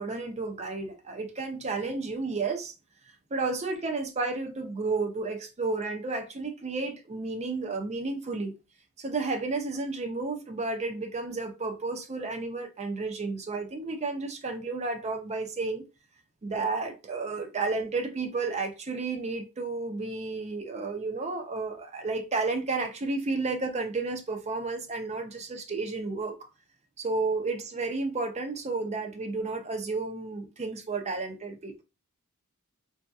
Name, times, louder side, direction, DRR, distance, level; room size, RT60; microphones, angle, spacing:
voice 1, 0.0-2.7 3.3-8.5 9.0-15.8 16.4-26.4 27.0-31.8, right 3 dB, 30° right, 0.5 m, -32 dB
3.5 x 2.7 x 2.3 m
head